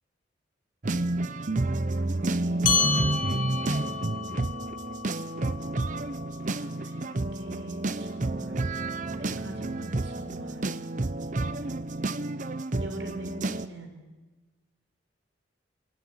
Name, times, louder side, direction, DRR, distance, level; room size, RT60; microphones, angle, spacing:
sound 1, 0.8-13.7, right 2 dB, 40° right, 0.7 m, -30 dB
voice 1, 1.8-2.7 6.4-8.7 9.0-10.7 11.3-11.7 12.8-14.0, right 1 dB, 75° right, 4 dB, 4.5 m, -44 dB
sound 2, 2.6-7.5, left 6 dB, 45° left, 2.4 m, -31 dB
26.5 x 18.5 x 8.8 m, 1.2 s
head